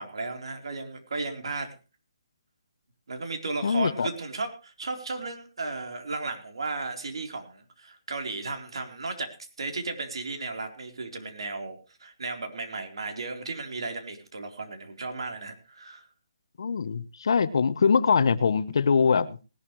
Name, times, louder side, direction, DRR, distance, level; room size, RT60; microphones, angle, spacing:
voice 1, 0.0-1.8 3.1-16.1, right 3 dB, 75° right, 5 dB, 3.9 m, -35 dB
voice 2, 3.6-4.1 16.6-19.4, left 5 dB, 65° left, 15 dB, 1.0 m, -23 dB
19.5 x 12.0 x 3.2 m, 0.32 s
hypercardioid pair, 165°, 3 cm